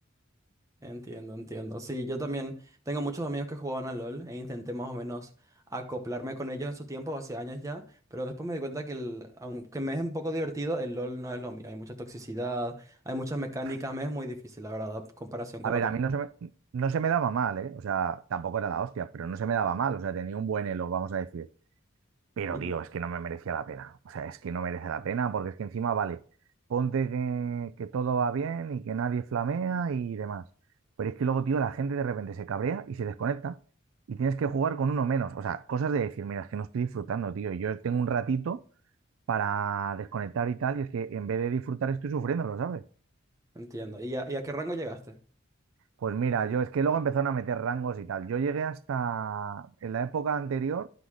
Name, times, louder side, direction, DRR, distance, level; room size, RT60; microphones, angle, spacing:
voice 1, 0.8-5.3 5.7-7.8 8.1-15.9 22.5-22.7 43.5-45.2, right 1 dB, 15° right, 0.9 m, -35 dB
voice 2, 15.6-21.5 22.4-26.2 26.7-30.4 31.0-33.6 34.1-38.6 39.3-42.8 46.0-50.9, right 6 dB, 75° right, 0.4 m, -30 dB
11.5 x 3.9 x 4.8 m
head